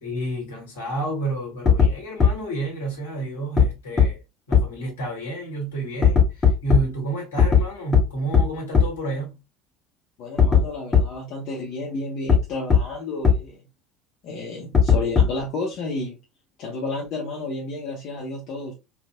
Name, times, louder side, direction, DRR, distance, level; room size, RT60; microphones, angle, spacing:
voice 1, 0.0-4.2 4.5-9.4, right 2 dB, 70° left, 1.4 m, -30 dB
sound 1, 1.7-1.9 2.2-2.3 3.6-3.7 4.0-4.1 4.5-4.6 6.0-6.8 7.4-7.6 7.9-8.0 8.3-8.4 8.7-8.8 10.4-10.6 10.9-11.0 12.3-12.4 12.7-12.8 13.2-13.3 14.7-15.4, left 7 dB, 20° left, 1.1 m, -15 dB
voice 2, 10.2-13.6 14.2-16.2 16.6-18.7, left 2 dB, 50° left, 0.8 m, -31 dB
3.5 x 2.4 x 2.2 m
figure-of-eight pair, 65°, 0 cm